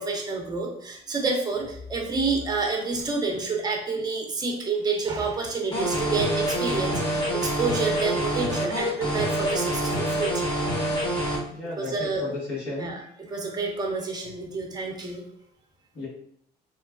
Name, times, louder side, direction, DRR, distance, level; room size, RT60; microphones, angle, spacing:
voice 1, 0.0-10.5 11.8-12.3 12.8-15.2, right 4 dB, 25° right, 1 dB, 0.6 m, -28 dB
sound 1, 5.7-11.4, right 1 dB, 25° left, 1.0 m, -26 dB
voice 2, 11.5-13.0 15.9-16.1, left 2 dB, 85° left, -6 dB, 1.4 m, -34 dB
3.0 x 2.2 x 2.3 m, 0.68 s
cardioid pair, 110°, 17 cm